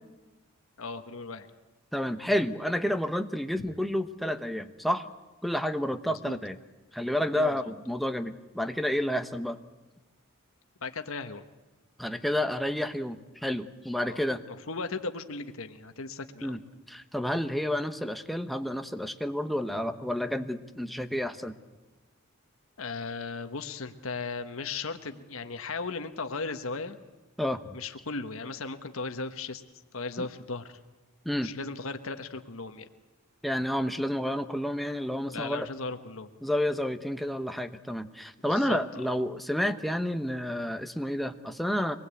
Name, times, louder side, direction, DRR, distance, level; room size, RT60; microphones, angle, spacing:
voice 1, 0.8-1.5 6.1-6.4 7.3-7.6 10.8-11.4 14.0-14.2 14.5-16.6 22.8-27.0 27.7-29.6 29.9-30.8 31.4-32.9 35.3-36.3 38.5-38.8, left 4 dB, 75° left, 8 dB, 1.3 m, -36 dB
voice 2, 1.9-5.1 5.4-6.6 6.9-9.6 12.0-14.4 16.4-16.6 16.9-21.5 27.4-27.8 30.2-30.3 31.2-31.5 33.4-35.7 36.4-42.0, left 1 dB, ahead, 8 dB, 1.0 m, -30 dB
25.0 x 19.5 x 8.4 m, 1.1 s
head